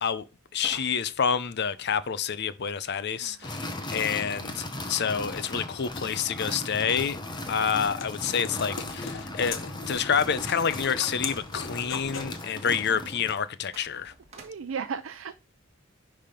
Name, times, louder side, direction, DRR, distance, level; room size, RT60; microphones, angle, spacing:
voice 1, 0.5-3.6 3.9-7.2 7.5-14.1, left 7 dB, 55° left, 0.6 m, -28 dB
sound 1, 0.6-2.1 3.4-6.2 7.0-7.1 7.3-7.4 8.0-10.2 13.6-14.7, right 3 dB, 35° right, 1.6 m, -51 dB
sound 2, 3.4-13.5, left 1 dB, 20° left, 1.2 m, -37 dB
sound 3, 7.4-12.4, left 5 dB, 70° left, 1.1 m, -40 dB
voice 2, 14.4-15.3, right 6 dB, 75° right, 0.5 m, -35 dB
10.0 x 3.5 x 5.2 m
head